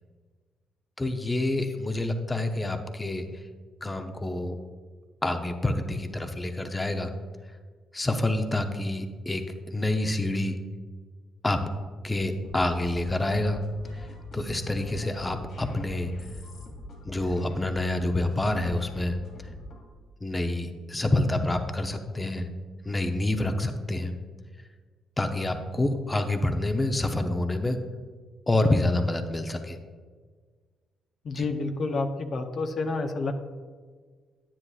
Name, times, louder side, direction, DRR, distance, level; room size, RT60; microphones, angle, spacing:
voice 1, 1.0-3.3 3.8-4.6 5.2-7.1 7.9-10.6 11.4-11.6 12.0-13.6 14.3-16.1 17.0-19.2 20.2-22.5 22.8-24.1 25.2-27.8 28.5-29.8 31.4-31.5, left 2 dB, 15° left, 6 dB, 0.7 m, -27 dB
sound 1, 12.4-19.9, left 2 dB, 75° left, 2.4 m, -43 dB
voice 2, 31.2-33.3, left 3 dB, 50° left, 5 dB, 0.7 m, -29 dB
9.9 x 9.5 x 2.4 m, 1.5 s
cardioid pair, 90°, 0 cm